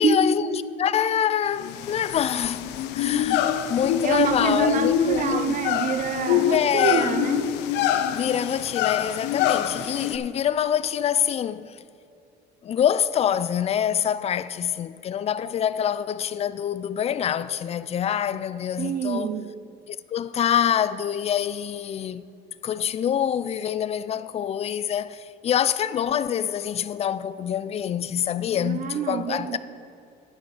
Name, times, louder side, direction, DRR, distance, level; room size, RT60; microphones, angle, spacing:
voice 1, 0.0-5.6 6.5-7.2 8.1-11.8 12.6-19.3 19.9-22.3 22.6-29.6, left 9 dB, 40° left, 0.4 m, -26 dB
sound 1, 1.6-10.2, left 10 dB, 90° left, 0.5 m, -25 dB
voice 2, 4.0-7.5 18.8-19.5 28.6-29.6, right 6 dB, 50° right, 0.7 m, -26 dB
10.5 x 8.4 x 4.9 m
cardioid pair, 110°, 17 cm